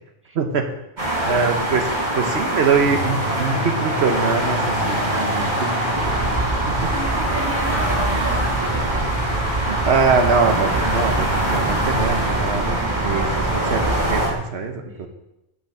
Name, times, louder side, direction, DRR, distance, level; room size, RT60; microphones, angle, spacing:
voice 1, 0.3-0.7 1.2-5.5 6.7-6.9 9.7-15.1, right 5 dB, 85° right, 4 dB, 1.2 m, -23 dB
sound 1, 1.0-14.3, right 1 dB, 45° right, 2.1 m, -24 dB
sound 2, 2.8-14.4, right 1 dB, 80° left, 1.5 m, -33 dB
voice 2, 4.9-5.6 6.9-8.8 14.9-15.1, right 2 dB, 10° right, 1 dB, 1.2 m, -32 dB
sound 3, 5.9-14.3, right 3 dB, 30° right, 0.4 m, -27 dB
7.0 x 5.7 x 6.5 m, 0.89 s
omnidirectional pair, 1.1 m